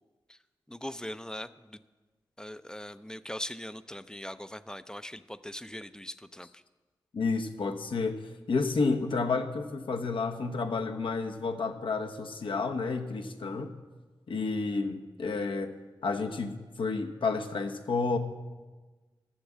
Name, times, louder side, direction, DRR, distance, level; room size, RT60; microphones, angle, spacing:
voice 1, 0.7-1.8 2.4-6.6, left 1 dB, 10° left, 13 dB, 0.5 m, -41 dB
voice 2, 7.1-8.2 8.5-13.7 14.3-15.7 16.0-18.2, left 4 dB, 75° left, 5 dB, 1.0 m, -30 dB
11.5 x 7.1 x 7.4 m, 1.3 s
cardioid pair, 40°, 9 cm